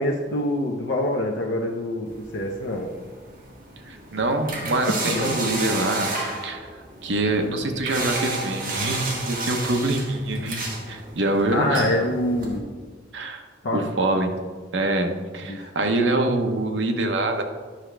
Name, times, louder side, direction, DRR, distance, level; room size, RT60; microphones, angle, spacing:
voice 1, 0.0-2.9 5.1-5.4 11.5-12.6 13.6-13.9 15.5-15.7, left 1 dB, 80° left, 0 dB, 0.7 m, -25 dB
sound 1, 2.1-12.6, right 2 dB, 50° right, 1.6 m, -32 dB
voice 2, 3.8-6.1 6.4-6.7 7.0-12.0 13.1-13.5 13.7-14.4 14.7-17.4, right 2 dB, 75° right, 4 dB, 0.9 m, -25 dB
10.0 x 6.0 x 3.3 m, 1.5 s
head